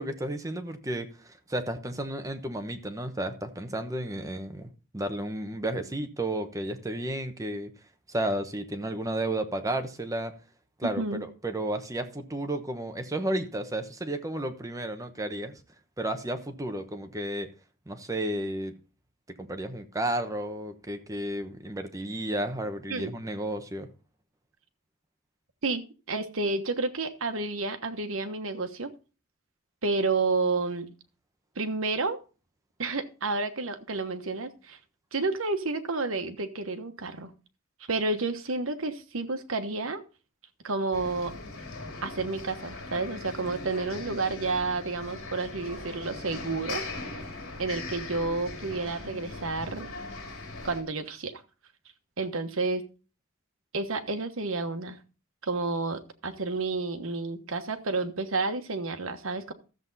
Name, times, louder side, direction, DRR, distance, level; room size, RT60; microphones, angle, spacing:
voice 1, 0.0-7.7 8.1-10.3 10.8-15.5 16.0-17.5 17.9-18.7 19.4-23.9, right 1 dB, 15° right, 7 dB, 1.0 m, -32 dB
voice 2, 10.8-11.2 22.9-23.1 25.6-25.8 26.1-28.9 29.8-30.9 31.6-32.2 32.8-34.8 35.1-37.3 37.9-40.0 40.6-41.3 42.0-46.8 47.6-49.9 50.6-51.4 52.2-52.8 53.7-55.0 55.4-59.5, right 3 dB, 70° right, 8 dB, 1.2 m, -30 dB
sound 1, 40.9-50.8, left 3 dB, 70° left, 3.0 m, -40 dB
13.5 x 7.5 x 4.0 m, 0.34 s
head